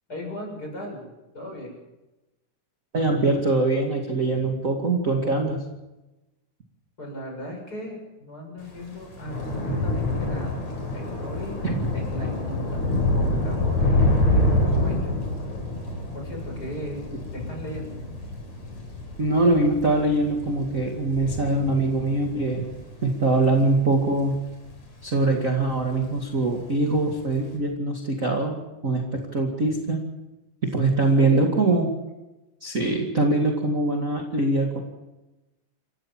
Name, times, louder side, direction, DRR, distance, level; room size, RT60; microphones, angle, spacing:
voice 1, 0.1-1.1 1.3-1.8 7.0-10.6 10.9-11.6 11.9-12.8 13.1-13.8 14.3-15.2 16.1-17.0 17.3-18.0 31.2-31.5, equal, 30° left, 1 dB, 7.5 m, -37 dB
voice 2, 2.9-5.6 11.6-11.9 19.2-22.7 23.0-24.4 25.0-28.5 28.8-30.0 30.6-31.9 32.6-34.8, right 2 dB, 30° right, 0 dB, 2.4 m, -23 dB
Thunder / Rain, 8.7-25.3 25.6-26.1 26.3-26.5, left 1 dB, 55° left, 5.5 m, -27 dB
28.5 x 15.0 x 7.6 m, 1.0 s
omnidirectional pair, 3.6 m